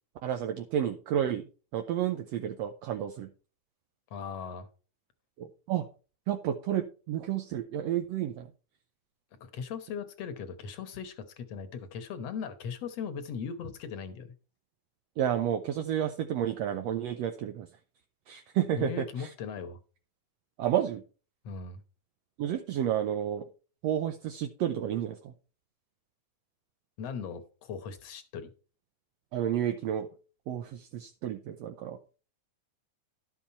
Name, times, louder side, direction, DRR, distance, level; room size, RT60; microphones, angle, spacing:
voice 1, 0.2-3.3 5.4-5.9 6.3-8.5 15.2-17.7 18.3-18.9 19.2-19.3 20.6-21.0 22.4-23.4 23.8-25.3 29.3-30.1 30.5-32.0, right 10 dB, 75° right, 1.6 m, -31 dB
voice 2, 4.1-4.7 9.4-14.3 18.8-19.8 21.4-21.8 27.0-28.5, left 6 dB, 65° left, 1.9 m, -38 dB
12.0 x 7.2 x 4.4 m
omnidirectional pair, 3.6 m